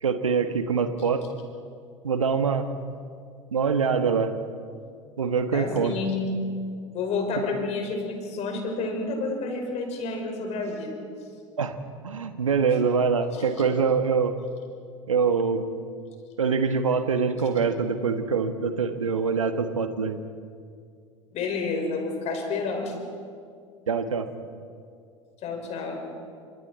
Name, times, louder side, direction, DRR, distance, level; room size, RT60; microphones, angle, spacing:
voice 1, 0.0-1.2 2.0-2.7 3.5-4.3 5.2-6.0 11.6-11.8 12.0-14.4 15.1-15.7 16.4-20.2 23.9-24.3, right 5 dB, 80° right, 9 dB, 1.4 m, -24 dB
voice 2, 5.5-6.4 6.9-10.9 13.3-13.6 21.3-23.0 25.4-26.0, left 3 dB, 40° left, 3 dB, 5.7 m, -30 dB
30.0 x 27.0 x 4.4 m, 2.2 s
figure-of-eight pair, 75°, 17 cm